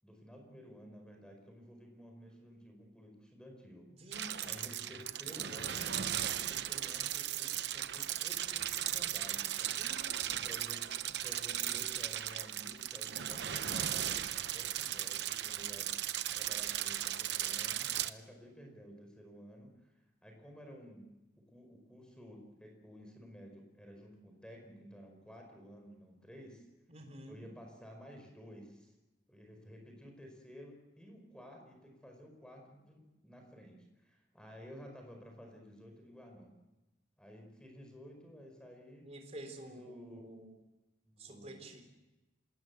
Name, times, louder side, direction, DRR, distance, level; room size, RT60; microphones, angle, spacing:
voice 1, 0.0-3.9 4.4-9.8 10.2-15.9 16.3-19.9 20.2-21.1 21.5-26.7 27.3-28.9 29.3-36.6 37.2-39.1 39.6-40.3 41.0-41.7, equal, 5° left, 3 dB, 4.9 m, -53 dB
voice 2, 4.0-4.8 9.7-10.5 26.9-27.5 39.0-40.5 41.2-41.8, right 1 dB, 35° right, 5 dB, 3.9 m, -50 dB
sound 1, 4.1-18.1, right 11 dB, 65° right, 0.9 m, -37 dB
26.5 x 19.5 x 8.1 m, 1.1 s
head